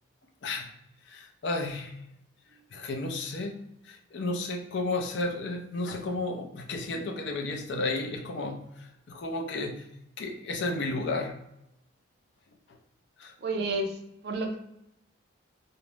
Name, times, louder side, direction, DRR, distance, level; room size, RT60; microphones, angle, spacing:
voice 1, 0.4-0.7 1.1-2.0 2.7-8.7 9.1-9.9 10.2-11.4 13.2-13.3, left 2 dB, 60° left, 3 dB, 0.4 m, -33 dB
voice 2, 13.4-14.0 14.2-14.5, right 2 dB, 50° right, 4 dB, 0.4 m, -30 dB
2.4 x 2.0 x 3.0 m, 0.82 s
head